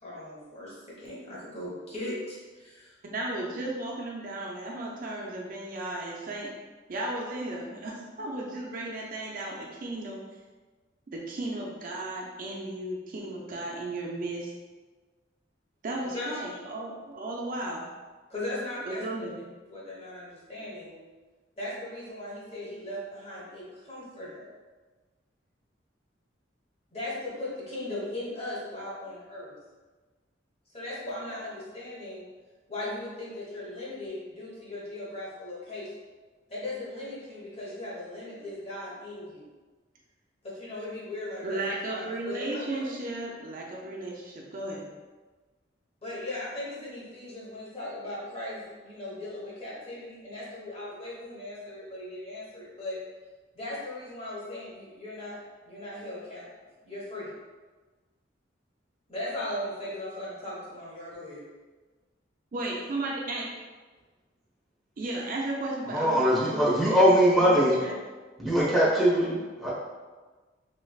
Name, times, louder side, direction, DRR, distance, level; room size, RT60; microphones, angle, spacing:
voice 1, 0.0-3.0 16.1-16.5 18.3-19.0 19.7-21.0 21.6-24.5 26.9-29.5 30.7-32.3 32.7-35.9 36.5-39.4 40.4-42.9 46.0-53.0 53.5-56.5 56.8-57.3 59.1-61.4, left 1 dB, 35° left, -7 dB, 1.0 m, -38 dB
voice 2, 3.1-6.5 6.9-10.2 11.1-14.5 15.8-17.9 18.9-19.4 41.4-44.8 62.5-63.5 65.0-68.0, right 2 dB, 50° right, -2 dB, 0.4 m, -35 dB
voice 3, 65.9-67.8 68.4-69.7, equal, ahead, -9 dB, 0.9 m, -22 dB
3.2 x 3.2 x 2.3 m, 1.3 s
head